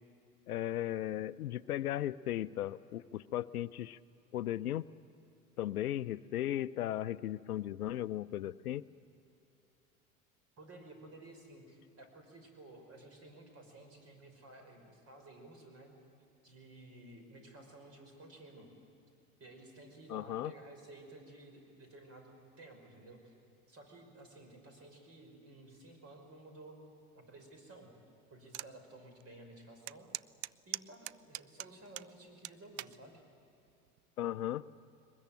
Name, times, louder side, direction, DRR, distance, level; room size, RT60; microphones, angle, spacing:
voice 1, 0.5-4.0 4.3-4.9 5.6-8.9 20.1-20.5 34.2-34.6, left 12 dB, 75° left, 17 dB, 0.6 m, -36 dB
voice 2, 10.6-15.9 16.4-18.7 19.4-23.3 23.7-26.8 27.1-27.9 28.3-30.1 30.7-33.2, right 2 dB, 35° right, 4 dB, 5.6 m, -54 dB
sound 1, 28.5-28.7 29.2-29.3 29.9-32.1 32.4-33.0 33.7-34.0, right 19 dB, 50° right, 0.5 m, -41 dB
22.5 x 20.5 x 9.0 m, 2.7 s
hypercardioid pair, 85°, 44 cm